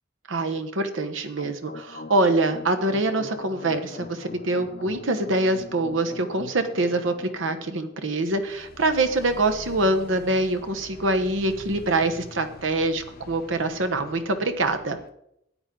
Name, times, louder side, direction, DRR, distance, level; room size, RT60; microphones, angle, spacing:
voice 1, 0.3-15.0, right 2 dB, 80° right, 7 dB, 1.1 m, -25 dB
sound 1, 1.4-15.1, left 3 dB, 50° left, 0.7 m, -43 dB
13.0 x 8.9 x 3.8 m, 0.78 s
head